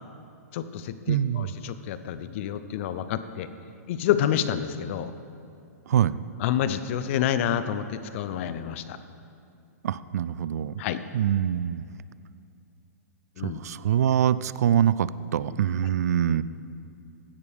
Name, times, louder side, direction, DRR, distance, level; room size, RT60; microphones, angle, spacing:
voice 1, 0.5-3.5 3.9-5.1 6.4-9.0 10.8-11.0 13.4-13.6, left 10 dB, 50° left, 12 dB, 0.7 m, -28 dB
voice 2, 1.1-1.5 5.9-6.2 9.8-10.7 11.1-11.8 13.4-16.4, right 9 dB, 70° right, 17 dB, 0.4 m, -24 dB
16.5 x 10.5 x 3.6 m, 2.5 s
hypercardioid pair, 130°, 9 cm